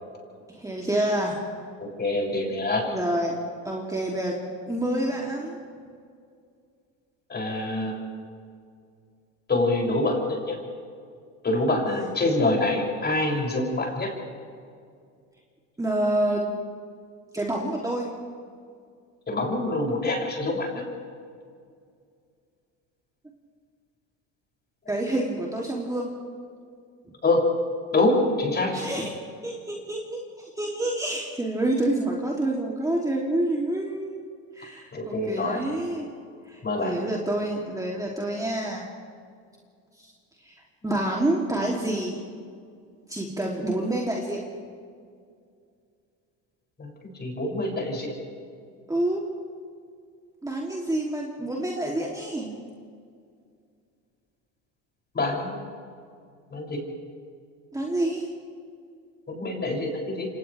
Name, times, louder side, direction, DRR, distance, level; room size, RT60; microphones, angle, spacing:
voice 1, 0.5-1.3 2.9-3.3 3.6-4.4 4.7-5.6 11.9-12.1 15.8-16.5 17.3-18.1 24.9-26.1 28.7-29.1 29.4-34.2 34.6-36.1 36.5-38.9 40.0-40.1 40.4-40.5 40.8-42.2 43.1-44.4 48.9-49.3 50.4-52.5 57.7-58.3, right 1 dB, 10° right, -2 dB, 3.2 m, -28 dB
voice 2, 2.0-2.8 7.3-7.9 9.5-10.6 11.4-14.1 19.3-20.8 27.2-27.4 27.9-28.8 34.9-35.6 36.6-36.9 40.8-41.0 46.8-46.9 47.2-48.1 55.1-55.6 56.5-56.8 59.3-60.3, left 2 dB, 25° left, -1 dB, 7.6 m, -25 dB
28.5 x 26.0 x 3.6 m, 2.2 s
supercardioid pair, 90°, 37 cm